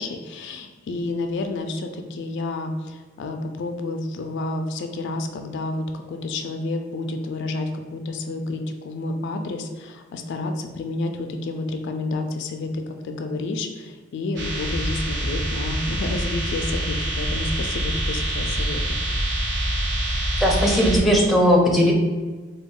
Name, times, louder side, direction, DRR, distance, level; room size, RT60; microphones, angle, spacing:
voice 1, 0.0-12.7 13.0-18.8, left 2 dB, 60° left, 5 dB, 0.3 m, -30 dB
sound 1, 14.4-21.0, right 1 dB, 60° right, 0.8 m, -25 dB
voice 2, 20.4-21.9, equal, ahead, -2 dB, 0.5 m, -18 dB
3.5 x 2.2 x 3.7 m, 1.3 s
head